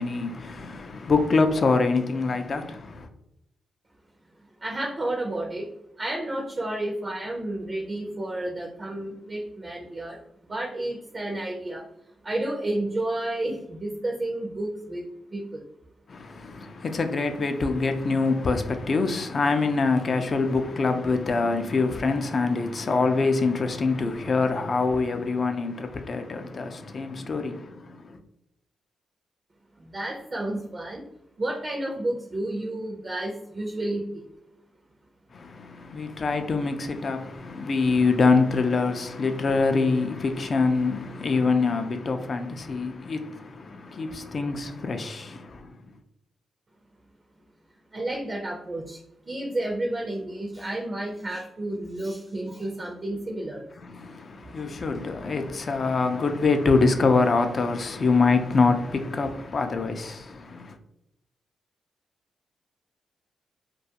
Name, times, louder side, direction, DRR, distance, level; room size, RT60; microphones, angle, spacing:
voice 1, 0.0-3.1 16.1-28.2 35.3-45.7 53.8-60.8, left 4 dB, 50° left, 0.3 m, -25 dB
voice 2, 4.6-5.7 6.0-10.2 10.5-11.9 12.2-15.1 15.3-15.6 29.8-31.0 31.4-34.2 47.9-49.0 49.3-53.7, right 1 dB, 35° right, 0.5 m, -31 dB
2.3 x 2.3 x 2.7 m
cardioid pair, 75°, 0 cm